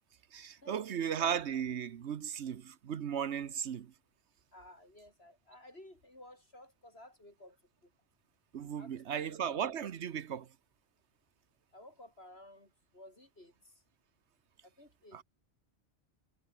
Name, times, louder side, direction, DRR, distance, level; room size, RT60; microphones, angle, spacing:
voice 1, 0.3-3.9 8.5-10.5 15.1-15.2, right 8 dB, 75° right, 1.2 m, -36 dB
voice 2, 4.5-7.6 7.8-7.9 8.8-9.4 11.7-13.7 14.6-15.2, left 1 dB, 60° left, 8.2 m, -55 dB
omnidirectional pair, 1.2 m